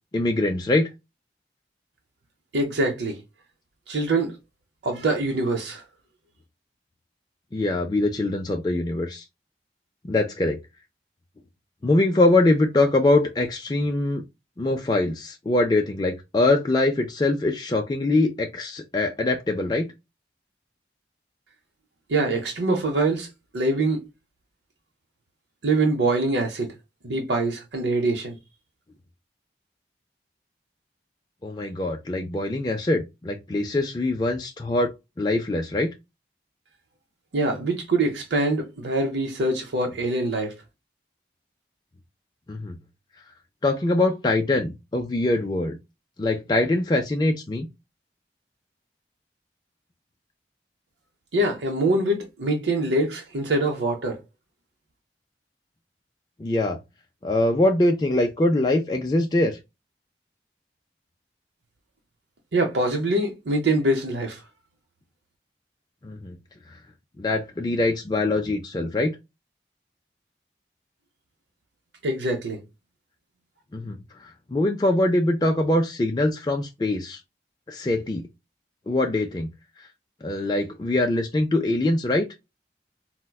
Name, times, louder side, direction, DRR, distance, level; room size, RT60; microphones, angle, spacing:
voice 1, 0.1-0.9 7.5-9.2 10.1-10.6 11.8-14.2 14.6-19.9 31.4-34.9 35.2-35.9 42.5-42.8 43.6-45.8 46.2-47.7 56.4-56.8 57.2-59.6 66.0-66.4 66.7-66.8 67.2-69.2 73.7-77.2 77.7-78.3 78.9-79.5 80.2-82.3, left 2 dB, 25° left, 0.3 m, -23 dB
voice 2, 2.5-3.2 3.9-4.3 4.8-5.8 22.1-23.3 23.5-24.0 25.6-26.7 27.0-28.4 37.3-40.5 51.3-54.2 62.5-64.4 72.0-72.6, right 2 dB, 85° right, 0.7 m, -24 dB
4.5 x 2.1 x 2.2 m
head